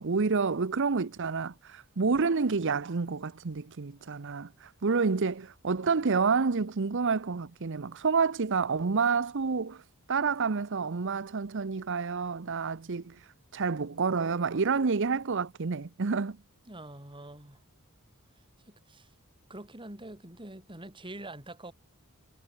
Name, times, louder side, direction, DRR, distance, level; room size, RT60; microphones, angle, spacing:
voice 1, 0.0-9.8 10.1-13.2 13.5-16.4, right 5 dB, 60° right, 0.7 m, -29 dB
voice 2, 16.6-17.6 18.6-19.1 19.5-21.7, right 1 dB, 20° right, 3.3 m, -45 dB
head